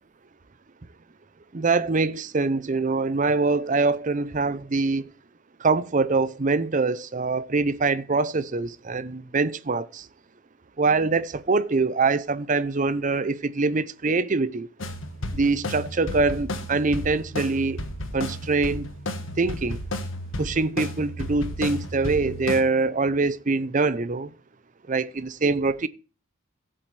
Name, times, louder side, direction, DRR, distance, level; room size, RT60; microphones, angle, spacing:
voice 1, 1.5-5.1 5.6-10.1 10.8-14.7 15.3-17.8 18.1-18.9 19.4-19.8 20.4-24.3 24.9-25.9, right 3 dB, 40° right, 0.6 m, -24 dB
sound 1, 14.8-22.6, left 1 dB, 80° left, 1.5 m, -33 dB
15.5 x 7.7 x 3.3 m
head